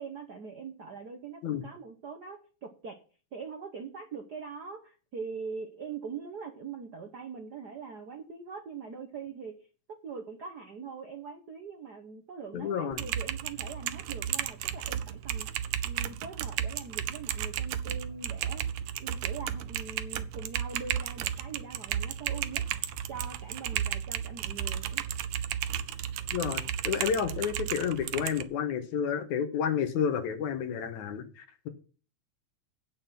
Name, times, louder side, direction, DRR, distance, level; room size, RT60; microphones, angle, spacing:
voice 1, 0.0-3.0 3.3-18.6 19.0-22.6 23.1-25.0, right 5 dB, 60° right, 4 dB, 1.0 m, -42 dB
voice 2, 12.5-13.0 26.3-31.7, left 7 dB, 80° left, 7 dB, 2.6 m, -30 dB
Typing, 12.9-28.4, right 10 dB, 80° right, 1.2 m, -34 dB
8.6 x 7.5 x 5.8 m, 0.37 s
omnidirectional pair, 3.3 m